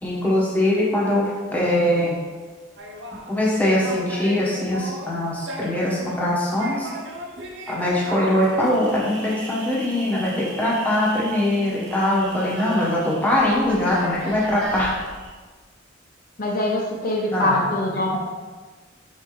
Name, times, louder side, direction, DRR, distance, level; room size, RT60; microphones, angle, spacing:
voice 1, 0.0-2.2 3.3-6.9 7.7-14.9 17.3-17.6 18.0-18.2, left 1 dB, 10° left, -6 dB, 1.3 m, -22 dB
sound 1, 2.8-15.3, right 1 dB, 65° right, 0.8 m, -37 dB
voice 2, 16.4-18.2, left 1 dB, 45° left, -3 dB, 0.7 m, -23 dB
5.5 x 5.4 x 3.3 m, 1.4 s
head